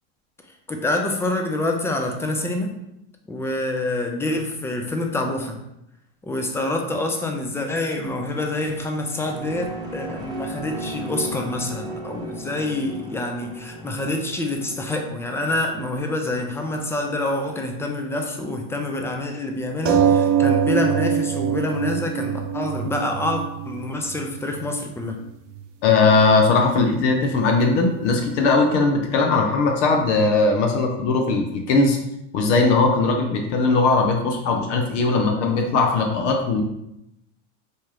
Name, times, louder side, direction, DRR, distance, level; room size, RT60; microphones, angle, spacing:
voice 1, 0.7-2.8 3.3-5.6 6.2-25.2, left 2 dB, 5° left, 3 dB, 0.3 m, -26 dB
sound 1, 8.9-17.5, right 1 dB, 10° right, 0.9 m, -37 dB
sound 2, 19.8-24.9 25.6-25.7 26.0-26.1, right 8 dB, 80° right, 0.6 m, -23 dB
voice 2, 25.8-32.0 32.3-36.6, left 3 dB, 75° left, 3 dB, 0.7 m, -19 dB
4.3 x 2.4 x 3.2 m, 0.83 s
supercardioid pair, 110°, 37 cm